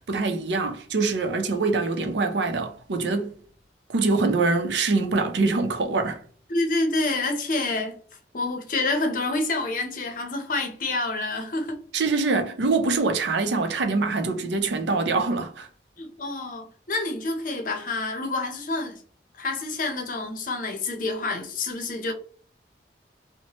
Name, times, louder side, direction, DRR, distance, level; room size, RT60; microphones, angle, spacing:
voice 1, 0.0-3.3 3.9-6.2 11.9-15.7, right 3 dB, 80° right, 0.5 m, -24 dB
voice 2, 6.5-8.0 8.3-11.8 16.0-19.0 19.4-22.1, left 2 dB, 50° left, 0.6 m, -28 dB
3.1 x 2.1 x 2.9 m
head